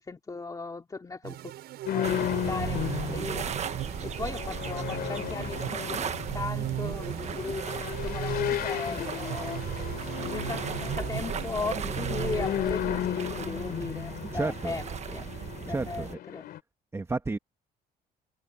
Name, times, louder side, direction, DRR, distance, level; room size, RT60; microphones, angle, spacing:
voice 1, 0.0-1.5 1.9-3.8 4.0-6.0 6.3-9.8 10.2-15.3 15.7-16.5, left 4 dB, 20° left, 2.5 m, -37 dB
sound 1, 1.2-13.0, right 14 dB, 75° right, 7.4 m, -38 dB
sound 2, 1.9-16.6, left 12 dB, 65° left, 3.0 m, -35 dB
sound 3, 2.0-16.1, right 8 dB, 40° right, 1.3 m, -37 dB
voice 2, 14.3-14.8 15.7-16.1 16.9-17.4, right 3 dB, 15° right, 1.7 m, -31 dB
cardioid pair, 110°, 17 cm